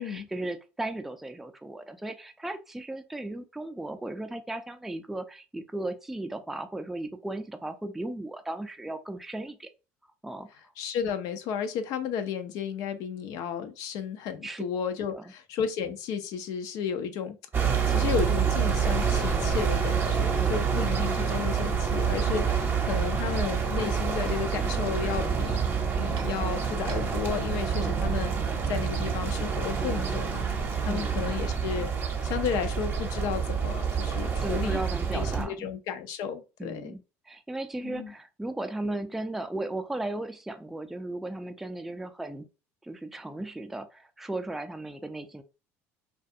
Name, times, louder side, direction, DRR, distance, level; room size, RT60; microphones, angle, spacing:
voice 1, 0.0-9.7 10.2-10.5 14.4-14.6 15.1-15.3 20.4-20.7 27.8-27.9 30.8-31.2 34.4-35.7 36.6-42.5 42.8-45.4, right 2 dB, 5° right, 0.3 m, -36 dB
voice 2, 10.8-17.4 17.6-25.6 26.0-28.3 28.7-30.4 30.8-31.9 32.2-34.8 35.1-36.9 37.8-38.1, left 7 dB, 70° left, 0.4 m, -33 dB
sound 1, 17.5-35.4, right 6 dB, 30° right, 0.7 m, -27 dB
sound 2, 21.9-31.4, right 7 dB, 70° right, 0.4 m, -39 dB
2.3 x 2.3 x 2.6 m
supercardioid pair, 90°, 7 cm